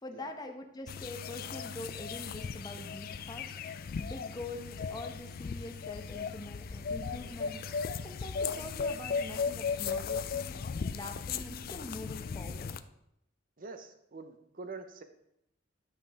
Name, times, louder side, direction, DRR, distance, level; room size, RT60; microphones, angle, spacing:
voice 1, 0.0-7.6 8.0-10.6 10.9-12.8, left 2 dB, 20° left, 4 dB, 0.8 m, -44 dB
sound 1, 0.9-12.8, left 5 dB, 45° left, 0.3 m, -37 dB
voice 2, 13.6-15.0, right 3 dB, 45° right, 8 dB, 0.7 m, -45 dB
11.0 x 5.5 x 3.4 m, 0.79 s
head